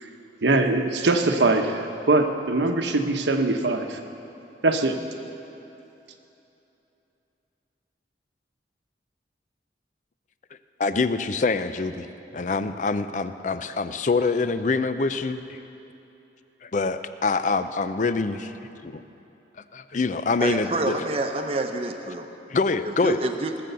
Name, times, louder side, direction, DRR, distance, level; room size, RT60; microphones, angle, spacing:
voice 1, 0.4-4.0 4.6-5.0, right 2 dB, 80° right, 5 dB, 1.0 m, -22 dB
voice 2, 10.8-12.1 12.3-15.6 16.6-18.5 18.8-19.0 19.7-21.0 22.5-23.2, left 4 dB, 45° left, 11 dB, 0.5 m, -25 dB
voice 3, 20.4-22.3 22.8-23.6, right 2 dB, 35° right, 5 dB, 0.8 m, -28 dB
19.5 x 7.7 x 6.8 m, 2.9 s
head